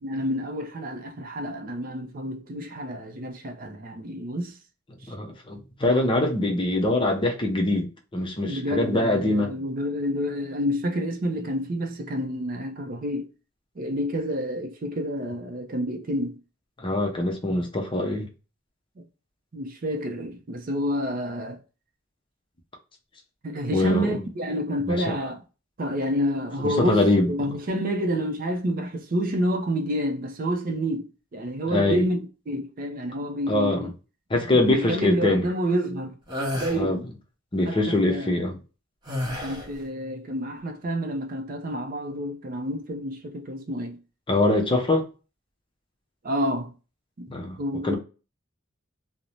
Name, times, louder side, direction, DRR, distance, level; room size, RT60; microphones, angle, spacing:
voice 1, 0.0-4.6 5.0-5.1 8.5-13.3 13.8-16.4 19.0-19.1 19.5-21.6 23.4-25.4 25.8-33.9 34.3-36.2 36.5-37.0 37.7-38.5 39.4-44.0 46.2-46.7 47.2-47.3 47.6-47.9, equal, 45° right, 0.5 m, -29 dB
voice 2, 5.1-9.5 16.8-18.3 23.7-24.1 24.9-25.1 26.6-27.3 31.7-32.0 33.5-33.9 34.3-35.4 36.7-37.0 37.5-38.6 44.3-45.1 47.3-47.6 47.8-48.0, left 2 dB, 25° left, 0.6 m, -23 dB
sound 1, 36.3-36.8 39.1-39.7, left 1 dB, 20° right, 0.8 m, -30 dB
2.5 x 2.0 x 2.9 m
head